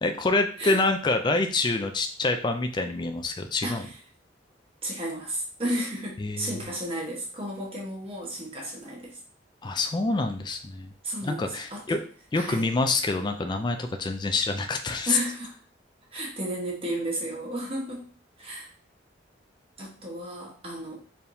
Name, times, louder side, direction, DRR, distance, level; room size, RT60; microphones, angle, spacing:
voice 1, 0.0-3.9 6.2-6.6 9.6-10.9 11.2-12.0 12.3-15.2, left 3 dB, 25° left, 6 dB, 0.3 m, -26 dB
voice 2, 3.6-3.9 4.8-9.2 11.0-12.0 12.3-12.7 15.1-15.5 16.1-18.1 18.4-18.7 19.8-21.1, right 1 dB, 30° right, -1 dB, 1.2 m, -33 dB
4.4 x 3.4 x 2.7 m, 0.42 s
head